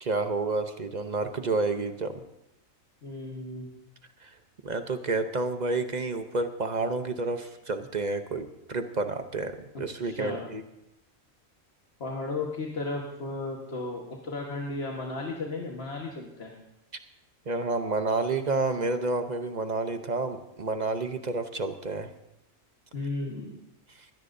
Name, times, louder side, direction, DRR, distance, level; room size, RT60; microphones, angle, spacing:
voice 1, 0.0-2.2 4.2-4.3 4.6-10.6 17.5-22.1, right 3 dB, 40° right, 8 dB, 0.8 m, -30 dB
voice 2, 3.0-3.7 9.7-10.5 12.0-16.5 22.9-23.6, left 3 dB, 50° left, -1 dB, 1.7 m, -34 dB
21.0 x 16.5 x 2.7 m, 0.88 s
omnidirectional pair, 1.4 m